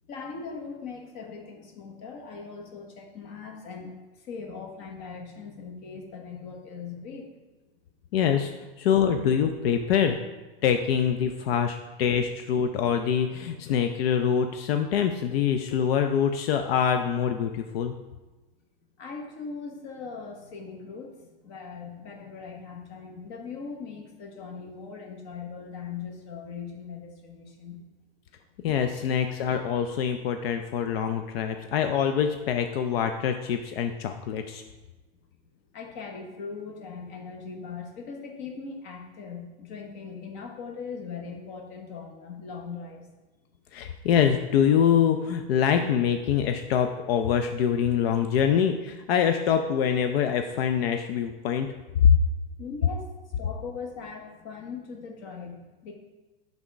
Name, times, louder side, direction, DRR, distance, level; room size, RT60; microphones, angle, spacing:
voice 1, 0.1-7.3 19.0-27.8 35.7-43.1 52.6-55.9, left 5 dB, 40° left, 2 dB, 1.2 m, -40 dB
voice 2, 8.1-8.5 8.8-10.2 10.6-17.9 28.6-34.6 43.7-51.7, left 8 dB, 80° left, 6 dB, 0.5 m, -25 dB
6.0 x 3.6 x 5.2 m, 1.2 s
supercardioid pair, 150°, 30 cm